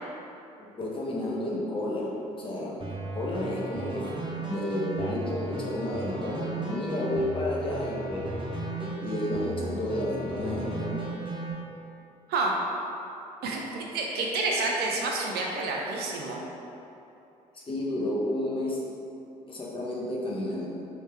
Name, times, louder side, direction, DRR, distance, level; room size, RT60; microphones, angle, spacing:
voice 1, 0.6-2.8 3.1-8.3 8.8-11.1 17.5-18.8 19.5-20.7, left 1 dB, 25° left, -4 dB, 0.8 m, -31 dB
sound 1, 2.8-11.5, right 2 dB, 25° right, 0.9 m, -35 dB
voice 2, 13.4-16.4, right 3 dB, 55° right, -1 dB, 0.5 m, -29 dB
3.2 x 2.8 x 3.4 m, 2.8 s
figure-of-eight pair, 50°, 19 cm